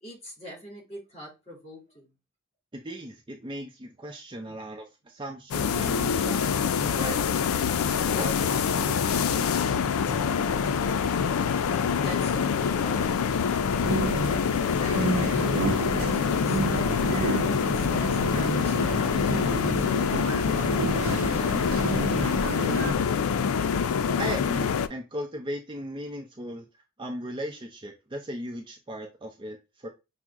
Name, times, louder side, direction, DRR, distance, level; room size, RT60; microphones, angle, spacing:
voice 1, 0.0-2.1 11.5-14.2 14.8-21.6, equal, 30° left, 2.7 m, -44 dB
voice 2, 2.7-6.6 6.9-7.2 8.1-9.8 24.2-26.7 27.0-29.9, right 1 dB, 25° right, 0.5 m, -37 dB
sound 1, 5.5-24.9, left 6 dB, 85° left, 0.4 m, -25 dB
sound 2, 13.8-22.9, right 3 dB, 80° right, 0.7 m, -31 dB
6.0 x 2.0 x 3.5 m
head